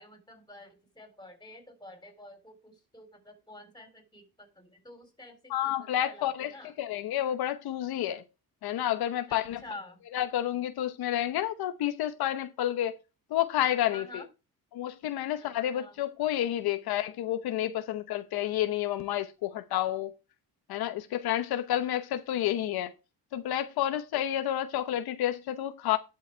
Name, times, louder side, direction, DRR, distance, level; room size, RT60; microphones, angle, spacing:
voice 1, 0.0-6.7 9.4-10.0 13.9-14.3 15.4-15.9, left 2 dB, 10° left, 3.7 m, -49 dB
voice 2, 5.5-8.2 8.6-9.6 10.1-12.9 13.3-14.2 14.7-20.1 20.7-22.9 23.3-26.0, left 12 dB, 80° left, 1.0 m, -30 dB
11.5 x 5.4 x 4.5 m
cardioid pair, 120°, 37 cm